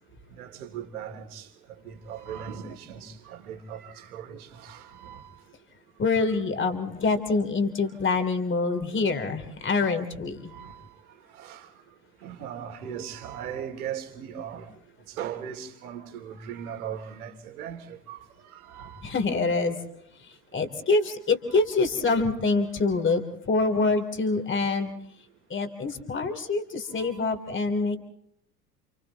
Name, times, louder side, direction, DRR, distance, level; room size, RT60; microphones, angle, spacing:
voice 1, 0.4-1.5 1.8-5.3 6.1-6.4 8.1-8.2 10.4-10.9 11.4-11.7 12.2-14.7 15.1-19.1 21.5-21.6 26.9-27.3, right 8 dB, 70° right, 3.0 m, -39 dB
voice 2, 6.0-10.5 19.0-19.8 20.2-24.9 25.5-28.0, left 3 dB, 25° left, 3.4 m, -26 dB
30.0 x 29.0 x 3.0 m
figure-of-eight pair, 75°, 46 cm